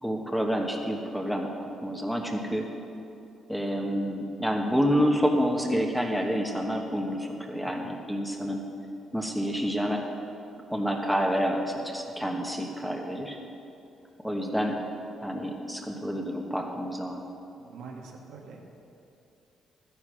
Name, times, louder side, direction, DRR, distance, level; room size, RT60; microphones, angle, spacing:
voice 1, 0.0-2.7 3.5-8.6 9.1-10.0 10.7-13.4 14.2-14.8 15.2-17.2, equal, ahead, 1 dB, 1.3 m, -28 dB
voice 2, 17.6-18.6, right 4 dB, 85° right, 0 dB, 1.8 m, -45 dB
12.0 x 10.0 x 6.3 m, 2.7 s
cardioid pair, 90°, 0 cm